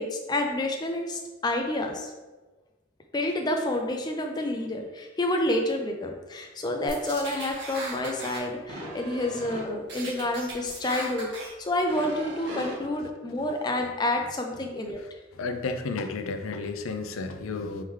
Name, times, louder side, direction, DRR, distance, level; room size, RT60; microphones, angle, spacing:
voice 1, 0.0-2.1 3.1-11.3 11.6-15.0, left 1 dB, 20° left, 3 dB, 0.4 m, -29 dB
sound 1, 6.9-8.4 8.7-9.6 9.9-11.5 11.9-12.7, right 1 dB, 60° right, 1.4 m, -38 dB
voice 2, 15.3-17.8, left 3 dB, 90° left, 8 dB, 0.4 m, -32 dB
4.4 x 3.6 x 3.1 m, 1.2 s
head